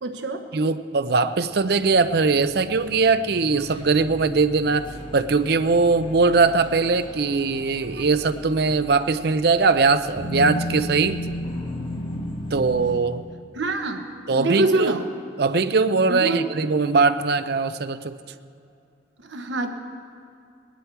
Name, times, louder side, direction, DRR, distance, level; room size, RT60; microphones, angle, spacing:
voice 1, 0.0-0.4 13.5-14.1 14.3-15.0 16.1-16.5 19.2-19.8, right 2 dB, 80° right, 5 dB, 1.1 m, -25 dB
voice 2, 0.5-11.2 12.5-13.2 14.3-15.0 15.4-18.2, right 4 dB, 60° right, 11 dB, 0.5 m, -21 dB
sound 1, 1.5-13.0, left 1 dB, 25° left, 1.2 m, -35 dB
19.5 x 11.5 x 4.6 m, 2.6 s
head